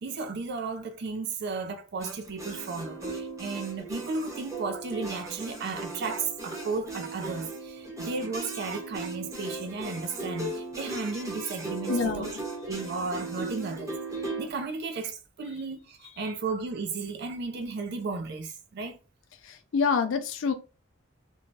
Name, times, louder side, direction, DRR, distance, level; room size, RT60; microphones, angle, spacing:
voice 1, 0.0-12.3 12.7-14.0 14.4-19.0, right 4 dB, 55° right, 0.4 m, -34 dB
sound 1, 2.0-14.5, right 2 dB, 15° right, 0.9 m, -37 dB
voice 2, 11.9-12.3 16.2-16.3 19.4-20.5, left 5 dB, 70° left, 0.4 m, -27 dB
2.6 x 2.2 x 3.1 m
head